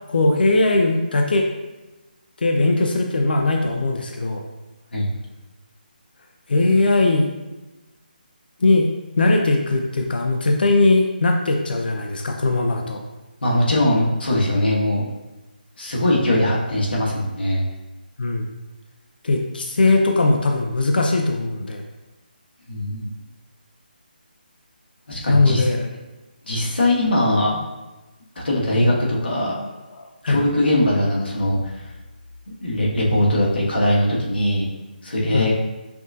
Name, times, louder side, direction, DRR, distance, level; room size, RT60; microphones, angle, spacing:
voice 1, 0.1-1.4 2.4-4.4 6.5-7.3 8.6-8.9 9.2-13.0 18.2-18.5 19.2-21.8 25.3-25.9 28.8-28.9 30.0-30.4 35.3-35.5, left 2 dB, 70° left, 2 dB, 0.5 m, -19 dB
voice 2, 13.4-15.0 15.8-17.6 22.7-23.1 25.1-25.7 26.5-27.6 28.3-29.6 30.3-31.7 32.5-34.7 35.0-35.5, left 1 dB, 85° left, -4 dB, 1.4 m, -21 dB
5.8 x 2.7 x 2.4 m, 1.1 s
hypercardioid pair, 170°, 5 cm